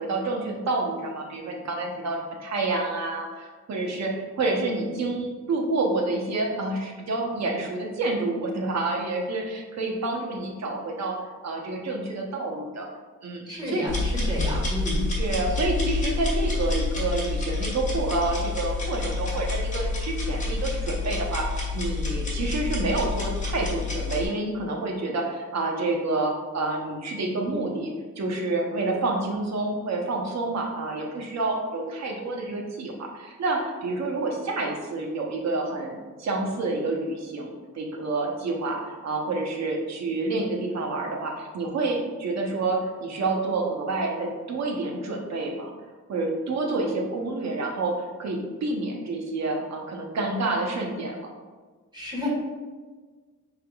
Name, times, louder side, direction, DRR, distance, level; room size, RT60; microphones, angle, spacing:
voice 1, 0.0-11.2 11.4-12.9 13.2-13.8 15.2-45.7 46.1-51.3, right 2 dB, 65° right, 0 dB, 0.9 m, -28 dB
voice 2, 13.5-15.0 51.9-52.3, left 1 dB, 15° right, -5 dB, 1.5 m, -31 dB
sound 1, 13.9-24.3, left 3 dB, 25° left, 1.4 m, -28 dB
5.6 x 3.5 x 2.3 m, 1.4 s
cardioid pair, 110°, 29 cm